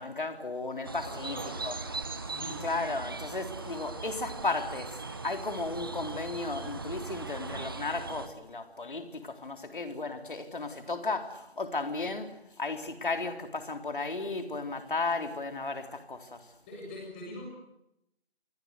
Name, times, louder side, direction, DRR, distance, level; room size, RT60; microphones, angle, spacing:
voice 1, 0.0-1.4 1.6-1.7 2.6-16.5, left 3 dB, 55° left, 3.9 m, -34 dB
sound 1, 0.8-8.3, right 3 dB, 20° right, 1.2 m, -39 dB
voice 2, 1.0-2.8 16.7-17.5, left 1 dB, 10° left, 7.4 m, -44 dB
27.5 x 24.5 x 8.2 m
figure-of-eight pair, 165°, 31 cm